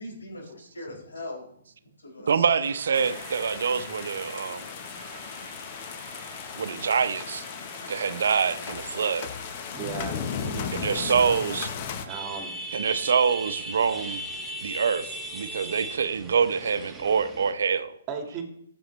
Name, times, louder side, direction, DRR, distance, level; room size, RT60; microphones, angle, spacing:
voice 1, 0.0-1.5 1.8-2.5, left 1 dB, 85° left, -1 dB, 4.5 m, -40 dB
voice 2, 2.3-4.7 6.6-7.4 7.9-9.3 10.7-11.7 12.7-14.2 14.6-17.9, right 6 dB, 70° right, 12 dB, 0.7 m, -25 dB
sound 1, 2.6-12.2, right 9 dB, 45° right, 1.0 m, -47 dB
sound 2, 2.9-12.1, left 7 dB, 40° left, 1.0 m, -36 dB
voice 3, 9.7-10.7 12.0-12.6 18.1-18.4, right 5 dB, 25° right, 5 dB, 1.8 m, -36 dB
sound 3, 12.1-17.5, right 1 dB, 5° right, 1.2 m, -37 dB
14.5 x 7.0 x 3.2 m, 0.71 s
hypercardioid pair, 135°, 0 cm